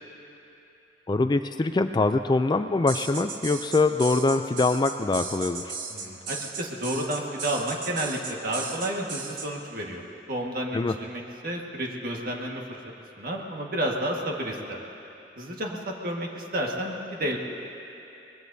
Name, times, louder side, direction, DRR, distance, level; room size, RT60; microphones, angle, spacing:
voice 1, 1.1-5.8 10.7-10.9, left 3 dB, 25° left, 9 dB, 0.3 m, -23 dB
sound 1, 2.9-9.5, right 5 dB, 80° right, 1.4 m, -36 dB
voice 2, 5.9-10.0 10.3-12.8 13.2-14.8 15.4-17.4, right 1 dB, 50° right, -1 dB, 1.6 m, -31 dB
24.0 x 20.5 x 2.7 m, 3.0 s
head